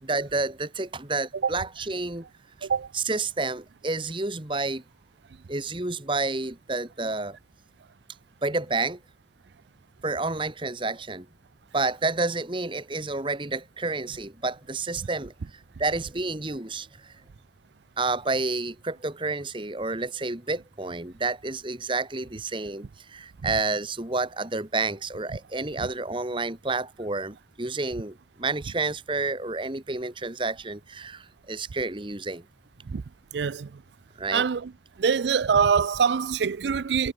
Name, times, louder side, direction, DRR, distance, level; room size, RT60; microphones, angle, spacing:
voice 1, 0.0-2.3 2.9-4.8 5.5-7.4 8.4-9.0 10.0-11.3 11.7-17.2 18.0-32.4 34.2-34.5, right 3 dB, 30° right, 1.8 m, -30 dB
voice 2, 33.3-33.7 34.3-34.7 35.0-37.1, right 6 dB, 80° right, 0.4 m, -24 dB
head